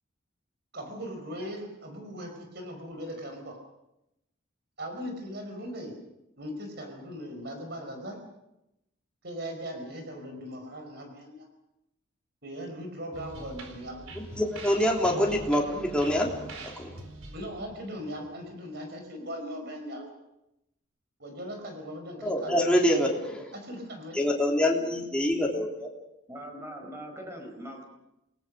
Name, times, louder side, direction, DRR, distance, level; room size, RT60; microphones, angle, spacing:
voice 1, 0.7-3.6 4.8-5.9 6.4-8.2 9.2-11.5 12.4-14.0 15.1-15.3 17.3-20.0 21.2-23.0 23.5-24.2, equal, 50° right, 4 dB, 5.0 m, -39 dB
sound 1, 13.1-18.7, right 2 dB, 85° right, 4.5 m, -44 dB
voice 2, 14.2-16.9 22.2-23.5 24.1-25.9, left 1 dB, 5° left, -1 dB, 3.4 m, -26 dB
voice 3, 26.3-27.8, equal, 15° right, 3 dB, 5.1 m, -41 dB
28.0 x 20.0 x 6.5 m, 0.88 s
head